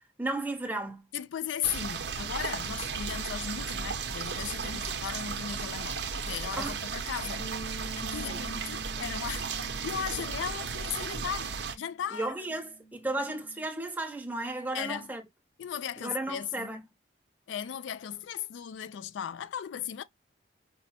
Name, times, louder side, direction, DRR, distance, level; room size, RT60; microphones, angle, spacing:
voice 1, 0.2-1.1 4.6-5.0 6.6-6.8 8.2-8.4 12.1-15.2 16.0-16.8, right 2 dB, 10° right, 0.8 m, -34 dB
voice 2, 1.1-7.4 7.9-12.4 14.7-15.1 15.6-16.7 17.5-20.0, left 9 dB, 85° left, 0.3 m, -37 dB
sound 1, 1.6-11.8, right 5 dB, 65° right, 0.6 m, -35 dB
sound 2, 7.4-12.0 12.2-13.6, right 3 dB, 45° left, 0.9 m, -47 dB
5.3 x 2.0 x 2.8 m
head